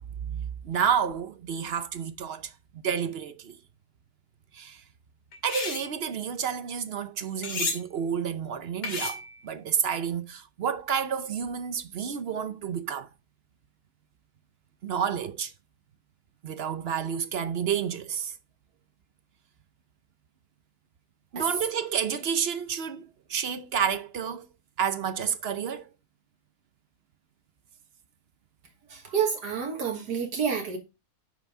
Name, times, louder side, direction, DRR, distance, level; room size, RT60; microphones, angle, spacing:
voice 1, 0.2-3.6 4.5-4.8 5.4-13.1 14.8-15.5 16.4-18.3 21.3-24.5 24.8-25.9, right 7 dB, 55° right, 0.7 m, -30 dB
sound 1, 5.3-5.9 7.4-7.8 8.8-9.4, left 3 dB, 85° left, 2.9 m, -31 dB
voice 2, 28.9-30.8, right 7 dB, 85° right, 2.0 m, -29 dB
8.8 x 6.2 x 3.6 m
omnidirectional pair, 1.7 m